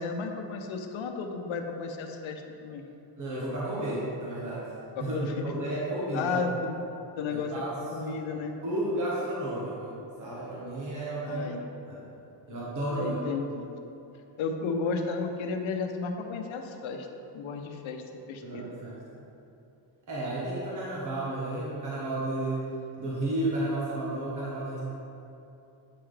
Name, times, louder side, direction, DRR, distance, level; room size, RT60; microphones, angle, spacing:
voice 1, 0.0-2.8 5.0-5.5 6.1-6.8 7.2-7.6 7.9-8.6 11.2-11.6 13.0-13.7 14.4-17.1 17.3-18.6, left 4 dB, 80° left, 4 dB, 0.8 m, -33 dB
voice 2, 3.2-4.7 5.0-6.4 7.3-11.5 11.9-12.0 12.5-13.2 18.4-19.0 20.1-22.6 23.0-24.8, right 1 dB, 40° right, -7 dB, 1.3 m, -32 dB
8.7 x 5.7 x 3.3 m, 2.8 s
cardioid pair, 160°, 46 cm